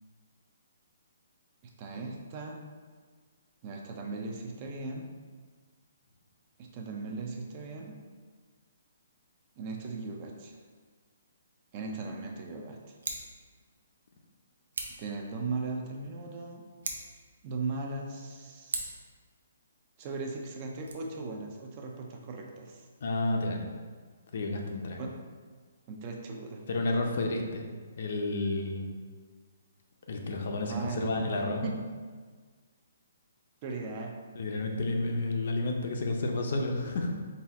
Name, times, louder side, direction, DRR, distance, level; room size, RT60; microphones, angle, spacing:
voice 1, 1.6-2.6 3.6-5.1 6.6-8.0 9.6-10.6 11.7-13.0 15.0-16.6 17.4-18.9 20.0-22.9 25.0-25.1 25.9-26.6 30.7-31.3 31.6-31.8 33.6-34.1, right 3 dB, 25° right, 1 dB, 0.4 m, -38 dB
Scissors, 12.9-13.3 14.7-15.1 16.7-17.2 18.7-19.1 20.7-20.9, right 3 dB, 75° right, 0.6 m, -37 dB
voice 2, 23.0-23.7 24.3-25.0 26.7-27.7 28.0-28.9 30.1-31.7 34.4-37.1, left 2 dB, 50° left, 2 dB, 0.5 m, -31 dB
4.0 x 2.3 x 4.0 m, 1.5 s
hypercardioid pair, 170°, 0 cm